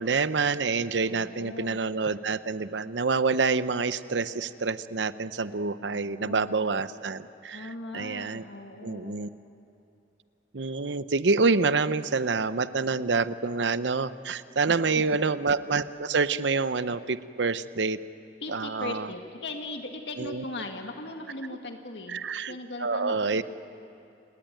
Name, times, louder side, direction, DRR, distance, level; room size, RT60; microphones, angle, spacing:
voice 1, 0.0-8.4 8.8-9.3 10.5-18.0 18.5-19.1 20.2-20.4 22.1-22.5 22.8-23.4, right 4 dB, 80° right, 14 dB, 0.8 m, -27 dB
voice 2, 1.0-1.8 5.7-6.5 7.5-9.2 14.7-15.2 18.4-23.4, left 2 dB, 70° left, 4 dB, 1.9 m, -39 dB
29.0 x 19.5 x 9.2 m, 2.8 s
head